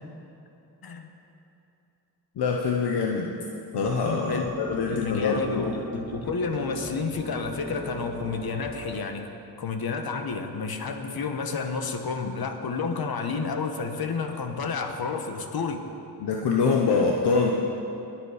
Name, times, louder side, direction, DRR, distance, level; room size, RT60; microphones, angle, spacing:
voice 1, 2.4-3.3 3.7-5.8 16.2-17.5, left 5 dB, 85° left, 0 dB, 1.0 m, -24 dB
sound 1, 3.8-9.0, right 4 dB, 30° right, 1.6 m, -40 dB
voice 2, 4.3-9.3 9.6-15.8, left 4 dB, 65° left, 5 dB, 1.3 m, -30 dB
20.5 x 7.5 x 5.0 m, 2.8 s
cardioid pair, 65°, 39 cm